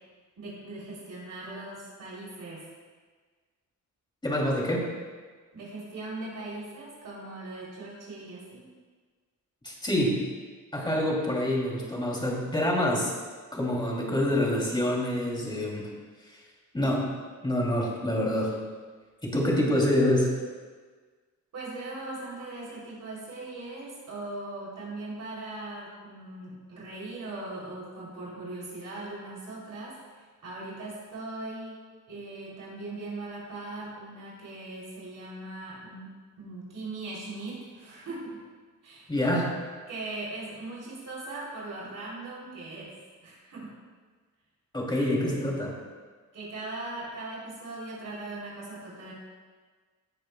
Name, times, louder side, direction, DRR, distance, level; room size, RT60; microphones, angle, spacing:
voice 1, 0.4-2.7 5.5-8.7 21.5-31.8 32.1-38.5 38.8-39.1 39.9-42.9 43.2-43.8 45.0-45.5 46.3-49.1, right 2 dB, 70° right, -5 dB, 3.2 m, -40 dB
voice 2, 4.2-4.8 9.6-10.2 10.7-13.1 13.5-15.9 16.3-16.4 16.7-17.1 17.4-18.5 19.2-20.3 39.1-39.5 44.7-45.7, left 1 dB, 15° left, -3 dB, 2.7 m, -26 dB
17.0 x 10.5 x 2.3 m, 1.5 s
wide cardioid pair, 135°, 32 cm